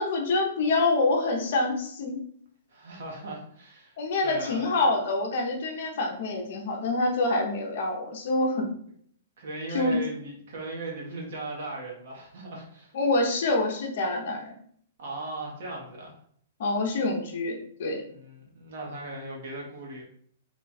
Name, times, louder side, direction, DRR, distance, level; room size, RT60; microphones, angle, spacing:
voice 1, 0.0-2.2 4.0-8.7 9.7-10.0 12.9-14.5 16.6-18.0, left 2 dB, 50° left, 2 dB, 0.7 m, -26 dB
voice 2, 2.7-3.9 4.2-4.7 9.4-12.9 15.0-16.1 18.1-20.1, right 2 dB, 60° right, -2 dB, 0.9 m, -38 dB
3.1 x 2.3 x 4.0 m, 0.62 s
hypercardioid pair, 170°, 0 cm